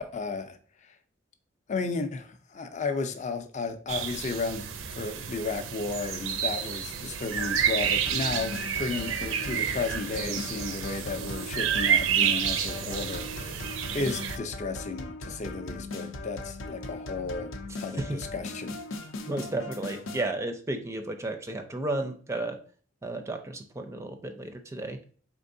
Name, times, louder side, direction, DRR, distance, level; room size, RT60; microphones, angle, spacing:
voice 1, 0.1-0.6 1.7-4.6 4.9-8.5 8.8-17.5 17.8-18.8, left 4 dB, 40° left, 8 dB, 0.5 m, -33 dB
sound 1, 3.9-14.4, right 8 dB, 80° right, 0.5 m, -30 dB
sound 2, 7.4-20.3, left 2 dB, 85° left, 0.6 m, -39 dB
voice 2, 19.3-22.6 23.0-25.0, right 2 dB, 15° right, 5 dB, 0.4 m, -33 dB
4.4 x 3.6 x 2.6 m, 0.43 s
head